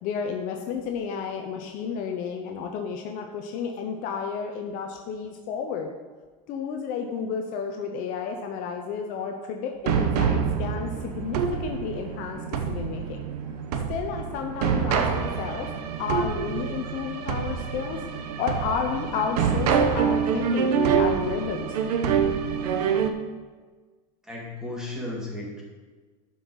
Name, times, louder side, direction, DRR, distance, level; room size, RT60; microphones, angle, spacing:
voice 1, 0.0-5.9 6.5-13.3 13.9-15.7 16.0-18.0 18.4-21.7, left 6 dB, 45° left, 3 dB, 0.8 m, -31 dB
sound 1, 9.9-23.1, right 7 dB, 85° right, 1.0 m, -26 dB
voice 2, 24.3-25.6, left 2 dB, 5° right, -4 dB, 2.0 m, -34 dB
11.5 x 5.5 x 4.7 m, 1.4 s
supercardioid pair, 160°, 19 cm